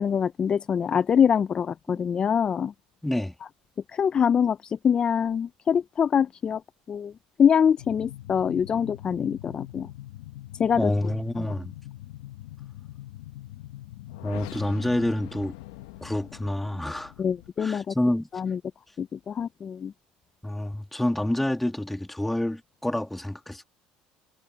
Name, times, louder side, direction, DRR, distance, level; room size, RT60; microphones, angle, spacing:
voice 1, 0.0-2.7 3.9-6.6 6.9-7.1 7.4-9.9 10.6-10.9 11.4-11.5 17.2-17.9 18.3-18.6 19.0-19.9, left 7 dB, 35° left, 0.4 m, -24 dB
voice 2, 3.0-3.3 10.7-11.7 14.2-15.5 16.0-17.1 17.6-18.3 20.4-23.6, left 1 dB, 5° left, 2.4 m, -28 dB
sound 1, 7.8-17.5, left 15 dB, 90° left, 1.0 m, -43 dB
supercardioid pair, 100°, 3 cm